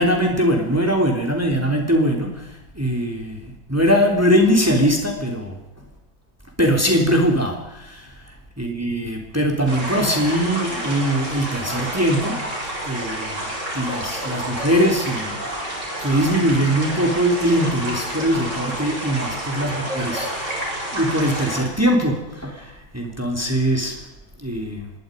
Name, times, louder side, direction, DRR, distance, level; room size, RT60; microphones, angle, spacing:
voice 1, 0.0-5.6 6.6-8.1 8.6-12.5 12.8-15.4 16.0-20.6 20.9-23.9 24.4-24.9, equal, 5° right, 2 dB, 3.3 m, -21 dB
sound 1, 9.7-21.6, right 1 dB, 35° right, 7.7 m, -29 dB
26.0 x 21.0 x 5.3 m, 0.94 s
omnidirectional pair, 2.2 m